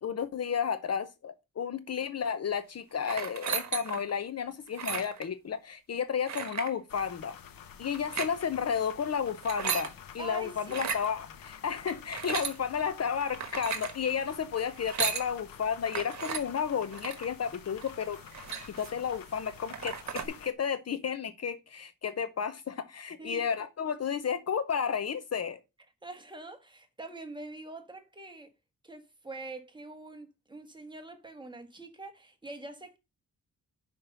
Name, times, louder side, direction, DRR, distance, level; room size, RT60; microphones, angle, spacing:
voice 1, 0.0-7.4 7.8-18.2 18.7-25.6, left 7 dB, 50° left, 0.7 m, -32 dB
sound 1, 3.0-4.1 4.7-5.3 6.3-6.7 7.9-8.3 9.3-9.9 10.6-11.1 11.9-12.6 13.3-13.9 14.7-15.3 15.9-16.4 16.9-17.3 17.8-17.9 18.1-19.0 19.4-19.5 19.7-20.3, right 6 dB, 55° right, 1.4 m, -34 dB
sound 2, 6.9-20.5, left 8 dB, 85° left, 1.0 m, -49 dB
voice 2, 10.2-10.8 23.2-23.5 23.9-24.0 26.0-28.5 28.8-33.0, right 2 dB, 15° right, 1.4 m, -44 dB
5.8 x 5.4 x 6.6 m
wide cardioid pair, 130°, 33 cm